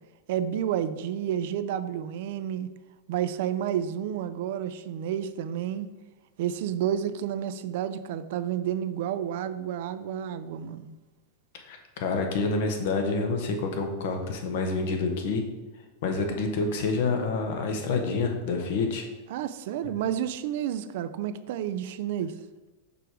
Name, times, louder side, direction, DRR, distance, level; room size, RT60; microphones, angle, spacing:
voice 1, 0.3-2.7 3.1-5.9 6.4-10.9 19.3-22.3, right 10 dB, 60° right, 12 dB, 0.4 m, -30 dB
voice 2, 11.6-15.4 16.0-19.0, left 3 dB, 60° left, 4 dB, 1.0 m, -28 dB
5.3 x 4.5 x 4.7 m, 1.1 s
supercardioid pair, 160°, 0 cm